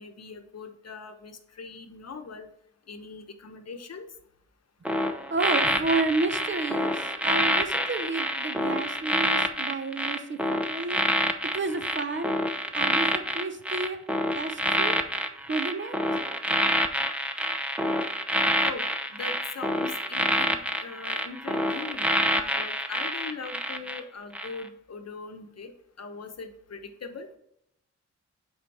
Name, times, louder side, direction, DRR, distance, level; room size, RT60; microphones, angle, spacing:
voice 1, 0.0-2.5 2.9-4.1 18.6-25.7 26.0-27.3, left 4 dB, 55° left, 0.9 m, -41 dB
sound 1, 4.8-24.0 24.3-24.6, equal, 5° right, 0.6 m, -27 dB
voice 2, 5.3-11.3 11.5-14.0 14.3-15.1 15.5-16.3, right 3 dB, 40° right, 0.6 m, -31 dB
8.0 x 3.7 x 4.7 m
wide cardioid pair, 95°, 30 cm